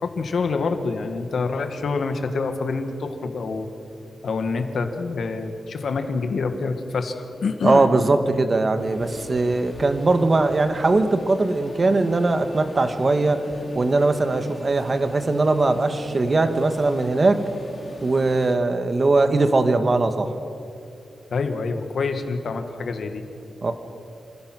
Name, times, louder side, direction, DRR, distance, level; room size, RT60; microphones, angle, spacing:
voice 1, 0.0-3.7 4.2-7.9 21.3-23.2, left 4 dB, 65° left, 7 dB, 1.8 m, -26 dB
voice 2, 7.6-13.4 13.7-17.4 18.0-20.3 23.6-23.7, right 3 dB, 30° right, 8 dB, 1.3 m, -20 dB
sound 1, 8.8-18.6, left 2 dB, 30° left, 2.5 m, -42 dB
27.5 x 16.0 x 6.2 m, 2.7 s
wide cardioid pair, 145°, 0 cm